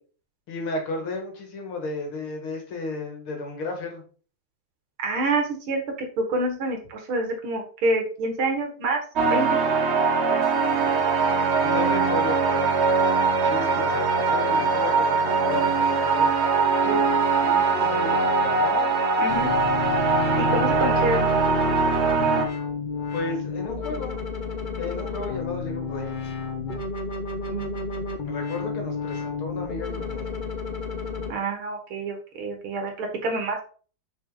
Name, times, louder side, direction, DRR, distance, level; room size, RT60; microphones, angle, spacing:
voice 1, 0.5-4.0 10.2-10.5 11.6-12.7 13.1-17.1 17.4-19.0 19.3-19.5 23.1-24.2 24.8-26.2 28.2-30.3, left 2 dB, 85° left, 3 dB, 2.9 m, -33 dB
voice 2, 5.0-9.0 9.3-9.6 19.2-19.5 20.4-21.2 27.5-28.1 31.3-33.6, right 2 dB, 80° right, 3 dB, 2.6 m, -27 dB
sound 1, 9.2-22.5, right 4 dB, 40° right, 1.0 m, -22 dB
sound 2, 19.3-31.3, left 4 dB, 40° left, 0.7 m, -31 dB
6.6 x 6.0 x 4.0 m, 0.40 s
omnidirectional pair, 2.3 m